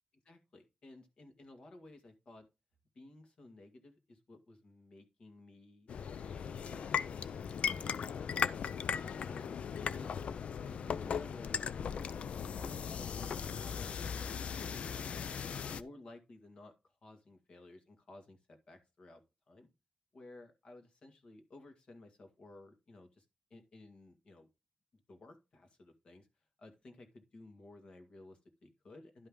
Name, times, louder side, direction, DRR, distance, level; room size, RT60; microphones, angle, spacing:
voice 1, 0.3-2.5 3.0-5.9 6.2-8.2 9.0-10.3 10.6-12.1 12.6-15.0 15.6-19.2 19.5-19.7 20.1-23.3 23.5-24.5 25.1-26.3 26.6-29.3, left 2 dB, 55° left, 6 dB, 1.9 m, -56 dB
sound 1, 5.9-15.8, left 7 dB, 85° left, 0.5 m, -38 dB
11.5 x 5.5 x 3.7 m, 0.26 s
wide cardioid pair, 175°, 2 cm